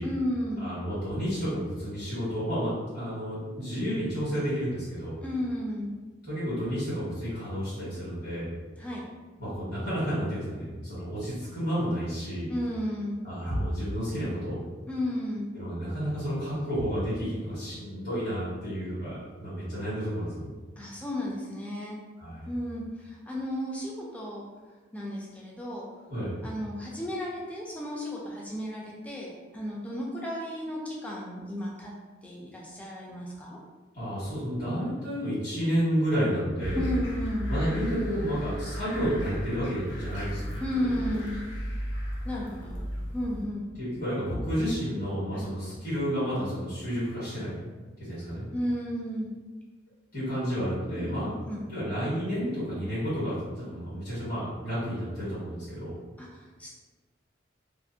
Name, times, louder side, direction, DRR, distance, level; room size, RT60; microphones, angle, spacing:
voice 1, 0.0-0.6 5.2-5.9 8.8-9.0 12.5-13.2 14.9-15.5 20.8-22.0 22.5-24.4 24.9-25.8 26.4-31.9 32.2-33.6 36.7-37.5 40.6-41.4 42.2-42.9 43.1-43.7 45.3-45.5 48.5-49.3 50.9-51.6 56.2-56.7, equal, 10° left, -4 dB, 0.4 m, -33 dB
voice 2, 0.6-5.2 6.2-8.5 9.4-12.5 13.2-14.6 15.5-20.5 22.2-22.5 26.1-26.4 33.9-36.8 37.5-41.0 43.8-47.6 48.0-48.4 50.1-51.3 51.7-55.9, equal, 50° left, -12 dB, 1.4 m, -31 dB
sound 1, 36.6-43.4, equal, 80° left, 0.6 m, -35 dB
2.5 x 2.4 x 2.7 m, 1.3 s
head